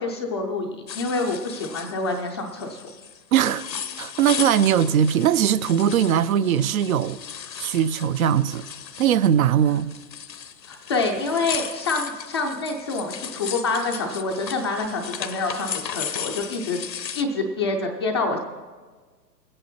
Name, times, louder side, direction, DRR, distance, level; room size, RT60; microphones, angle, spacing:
voice 1, 0.0-2.8 10.7-16.8 17.1-18.4, left 3 dB, 20° left, 0.4 m, -27 dB
sound 1, 0.9-17.2, left 8 dB, 80° left, 1.1 m, -36 dB
voice 2, 3.3-3.6 4.0-7.2 7.6-8.7 9.0-9.9, right 9 dB, 60° right, 0.5 m, -20 dB
21.0 x 8.9 x 4.3 m
hypercardioid pair, 130°, 50 cm